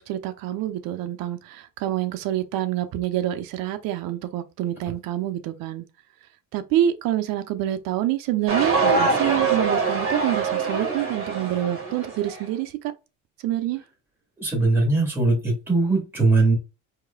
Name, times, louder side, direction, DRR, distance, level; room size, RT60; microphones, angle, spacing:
voice 1, 0.0-5.8 6.5-12.9 13.4-13.8, right 12 dB, 60° right, 0.8 m, -27 dB
sound 1, 8.5-12.4, right 4 dB, 35° right, 1.9 m, -24 dB
voice 2, 14.4-16.5, right 3 dB, 5° right, 2.4 m, -20 dB
4.6 x 2.9 x 2.3 m
supercardioid pair, 100°, 38 cm